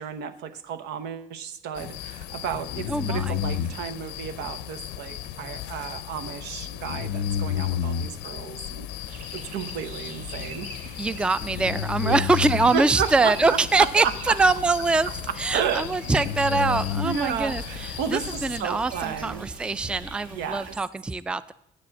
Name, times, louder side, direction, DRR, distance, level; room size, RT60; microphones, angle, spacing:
voice 1, 0.0-10.9 12.0-12.2 12.7-14.4 15.3-15.9 16.5-19.5 20.3-20.7, right 8 dB, 85° right, 11 dB, 0.9 m, -32 dB
sound 1, 1.8-18.6, left 9 dB, 85° left, 0.6 m, -33 dB
voice 2, 2.9-3.4 11.0-15.1 15.4-21.5, right 3 dB, 5° right, 16 dB, 0.3 m, -24 dB
sound 2, 9.1-20.8, right 3 dB, 55° right, 2.1 m, -43 dB
8.5 x 7.6 x 7.6 m, 0.77 s
cardioid pair, 110°, 17 cm